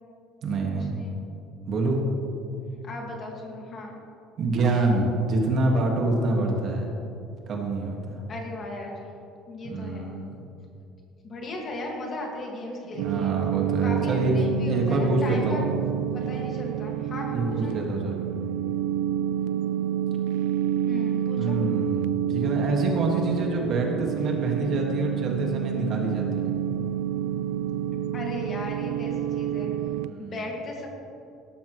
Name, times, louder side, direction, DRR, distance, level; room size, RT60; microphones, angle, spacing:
voice 1, 0.4-0.9 1.6-2.0 4.4-6.9 7.5-8.2 9.6-10.4 12.9-14.3 14.7-15.6 17.3-18.2 21.4-26.5 30.0-30.4, right 2 dB, 35° right, 0 dB, 1.7 m, -26 dB
voice 2, 2.8-4.0 8.3-9.1 9.5-10.2 11.2-13.3 13.8-15.7 16.1-17.9 20.9-21.6 28.1-29.7 30.2-30.9, left 2 dB, 25° left, 0 dB, 1.9 m, -36 dB
sound 1, 13.0-30.1, right 10 dB, 85° right, 0.4 m, -28 dB
17.5 x 13.0 x 3.1 m, 2.8 s
cardioid pair, 180°, 0 cm